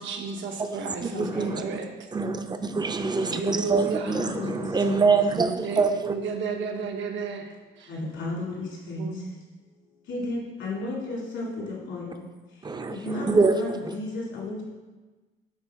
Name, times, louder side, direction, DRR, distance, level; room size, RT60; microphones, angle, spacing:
voice 1, 0.0-1.9 3.0-4.1 5.6-7.9 9.0-9.2, right 6 dB, 70° right, 4 dB, 0.9 m, -33 dB
voice 2, 0.6-1.6 2.1-6.2 12.6-13.6 13.8-14.0, right 4 dB, 20° right, 7 dB, 0.5 m, -25 dB
voice 3, 1.1-1.6 4.1-5.0 7.9-9.2 10.0-14.6, left 2 dB, 75° left, -4 dB, 2.3 m, -34 dB
10.5 x 3.7 x 3.5 m, 1.2 s
cardioid pair, 90°, 20 cm